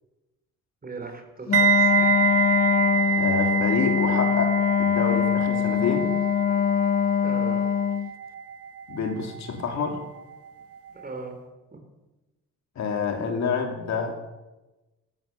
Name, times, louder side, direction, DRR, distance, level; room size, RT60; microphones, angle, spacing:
voice 1, 0.8-2.3 7.2-7.7 10.9-11.4 11.7-11.8, right 3 dB, 30° right, 5 dB, 4.0 m, -39 dB
Wind instrument woodwind instrument, 1.5-8.1, left 8 dB, 30° left, 0.5 m, -23 dB
sound 1, 1.5-10.5 10.7-11.0, right 9 dB, 50° right, 1.0 m, -27 dB
voice 2, 3.2-6.1 8.9-10.0 12.7-14.2, left 5 dB, 65° left, 4 dB, 3.0 m, -28 dB
15.0 x 13.0 x 7.0 m, 1.1 s
cardioid pair, 90°, 30 cm